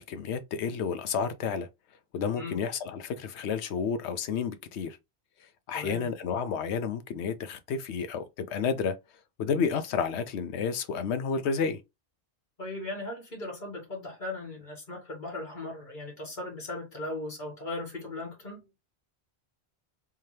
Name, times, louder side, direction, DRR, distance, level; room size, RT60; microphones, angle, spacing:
voice 1, 0.0-1.7 2.1-5.0 5.7-9.0 9.4-11.8, left 6 dB, 85° left, 0.9 m, -31 dB
voice 2, 5.7-6.1 12.6-18.7, left 2 dB, 50° left, 1.9 m, -38 dB
3.6 x 2.8 x 3.2 m
omnidirectional pair, 1.1 m